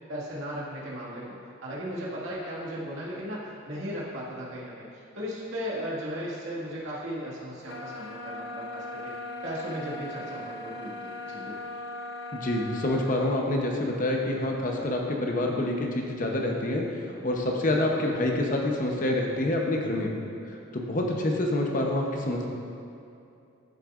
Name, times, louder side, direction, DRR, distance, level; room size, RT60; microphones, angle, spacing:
voice 1, 0.1-9.1 9.4-11.6, equal, 80° right, -6 dB, 2.0 m, -36 dB
sound 1, 7.7-13.2, left 1 dB, 80° left, 0.8 m, -39 dB
voice 2, 12.3-16.8 17.2-20.1 20.7-22.5, left 1 dB, 40° left, 0 dB, 0.9 m, -27 dB
13.0 x 6.5 x 2.5 m, 2.6 s
head